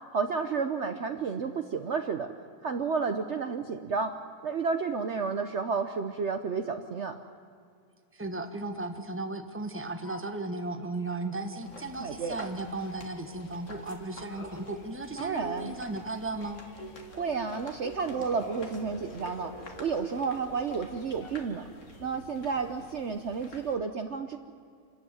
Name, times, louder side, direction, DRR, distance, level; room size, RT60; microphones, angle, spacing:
voice 1, 0.1-2.3 2.6-4.1 4.4-7.1 12.0-12.5 15.2-15.7 17.1-19.5 19.8-21.6 22.0-24.4, right 5 dB, 50° right, 7 dB, 1.1 m, -31 dB
voice 2, 8.1-16.6, right 2 dB, 10° right, 7 dB, 1.3 m, -35 dB
sound 1, 10.0-11.8 12.1-21.6, equal, 75° left, 3.9 m, -48 dB
sound 2, 11.6-23.8, left 2 dB, 50° left, 2.3 m, -50 dB
27.0 x 13.5 x 9.6 m, 2.3 s
omnidirectional pair, 1.7 m